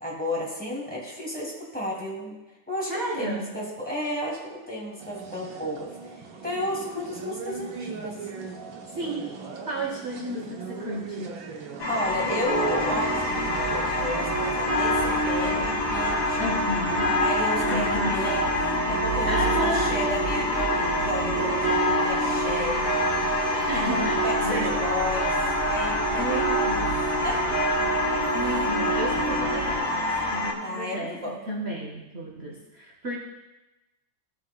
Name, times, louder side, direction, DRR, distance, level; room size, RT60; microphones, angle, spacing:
voice 1, 0.0-2.4 2.7-5.9 6.4-8.2 11.9-16.5 17.2-18.5 18.9-22.8 23.7-25.3 25.7-26.9 27.2-27.4 30.6-31.3, equal, 5° left, -4 dB, 2.3 m, -32 dB
voice 2, 2.9-3.6 9.0-9.3 9.6-11.4 16.4-17.2 17.6-18.3 19.3-20.0 23.5-24.8 26.2-27.0 28.3-33.2, right 1 dB, 40° right, -1 dB, 1.0 m, -32 dB
sound 1, 5.0-14.7, right 4 dB, 85° right, 1.7 m, -40 dB
sound 2, 11.8-30.5, left 2 dB, 85° left, 2.1 m, -29 dB
sound 3, 12.5-29.8, right 1 dB, 45° left, 2.4 m, -27 dB
15.5 x 7.2 x 2.2 m, 1.0 s
omnidirectional pair, 2.1 m